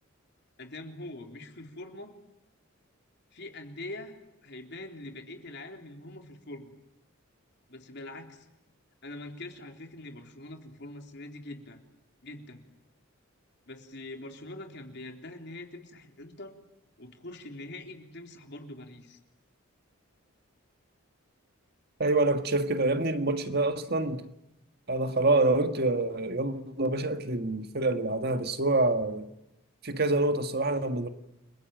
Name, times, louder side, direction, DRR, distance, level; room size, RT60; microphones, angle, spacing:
voice 1, 0.6-2.1 3.3-4.1 4.4-6.7 7.7-8.5 9.0-11.8 12.2-12.6 13.7-16.5 17.0-19.2, left 2 dB, 55° left, 3.7 m, -43 dB
voice 2, 22.0-24.3 24.9-29.3 29.8-31.1, right 2 dB, 50° right, 1.7 m, -26 dB
30.0 x 22.0 x 9.0 m
head